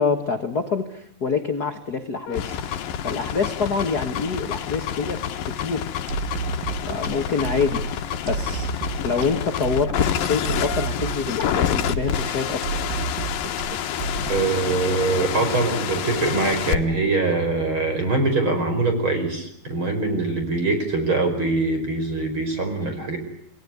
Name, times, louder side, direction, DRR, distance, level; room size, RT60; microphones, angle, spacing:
voice 1, 0.0-2.8 3.0-5.2 5.5-6.0 6.9-8.7 9.0-12.6, left 5 dB, 45° left, 6 dB, 1.2 m, -26 dB
sound 1, 2.3-16.8, left 9 dB, 70° left, 3.0 m, -28 dB
sound 2, 6.1-14.7, right 5 dB, 65° right, 4.0 m, -30 dB
voice 2, 14.3-23.2, right 3 dB, 35° right, 6 dB, 5.5 m, -23 dB
28.5 x 20.0 x 9.6 m, 0.73 s
omnidirectional pair, 4.2 m